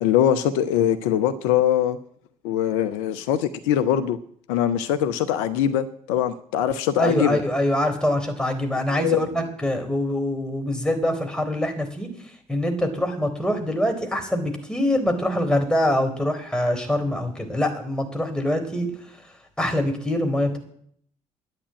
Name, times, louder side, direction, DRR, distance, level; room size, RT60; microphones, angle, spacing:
voice 1, 0.0-2.0 2.4-4.2 4.5-7.4 8.8-9.3, left 10 dB, 70° left, 11 dB, 0.7 m, -22 dB
voice 2, 7.0-12.1 12.5-18.9 19.6-20.6, left 1 dB, 5° left, 3 dB, 3.8 m, -24 dB
11.0 x 8.6 x 9.0 m, 0.66 s
figure-of-eight pair, 45°, 17 cm